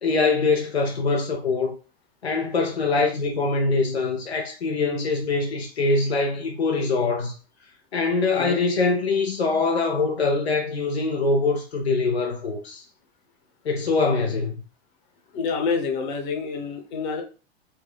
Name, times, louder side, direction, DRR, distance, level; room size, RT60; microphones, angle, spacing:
voice 1, 0.0-1.8 2.2-7.3 7.9-12.8 13.6-14.6, left 3 dB, 85° left, 0.7 m, -23 dB
voice 2, 15.3-17.2, left 5 dB, 50° left, 1.1 m, -27 dB
4.1 x 2.3 x 2.3 m
figure-of-eight pair, 100°, 31 cm